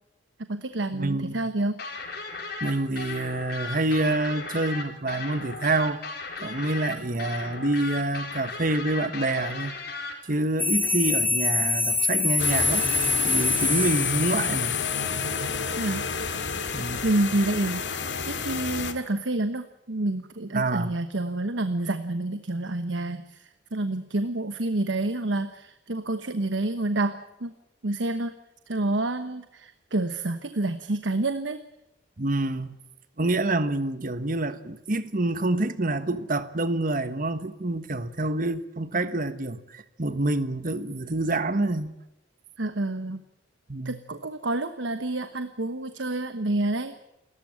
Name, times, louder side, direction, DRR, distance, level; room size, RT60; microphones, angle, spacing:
voice 1, 0.4-1.8 15.8-16.0 17.0-27.5 27.8-28.3 28.7-31.6 42.6-43.2 43.8-46.9, right 2 dB, 90° right, 1.1 m, -28 dB
voice 2, 0.9-1.4 2.6-6.0 6.4-9.8 10.3-12.9 13.2-14.7 16.7-17.0 20.5-21.0 32.2-32.8 33.2-41.9 43.7-44.0, right 2 dB, 50° right, 1.4 m, -27 dB
sound 1, 1.8-10.1, left 4 dB, 60° left, 4.5 m, -36 dB
sound 2, 10.6-14.6, left 3 dB, 10° left, 1.5 m, -25 dB
sound 3, 12.4-18.9, left 6 dB, 75° left, 2.1 m, -29 dB
29.0 x 14.0 x 8.7 m
head